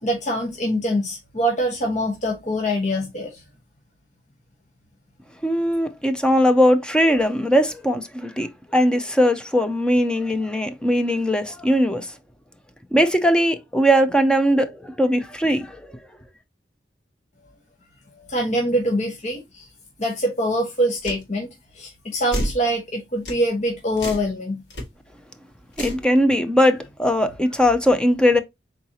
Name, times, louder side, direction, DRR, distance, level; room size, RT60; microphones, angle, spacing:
voice 1, 0.0-3.4 18.1-19.7 20.0-21.5 21.7-24.6, equal, 45° left, 1.1 m, -24 dB
voice 2, 5.4-12.1 12.9-15.9 25.8-28.4, equal, 5° left, 0.6 m, -20 dB
sound 1, 21.0-21.2 22.3-22.6 23.3-23.4 24.0-24.3 24.7-24.8 25.7-26.0, equal, 85° left, 2.2 m, -28 dB
4.2 x 3.9 x 2.9 m
head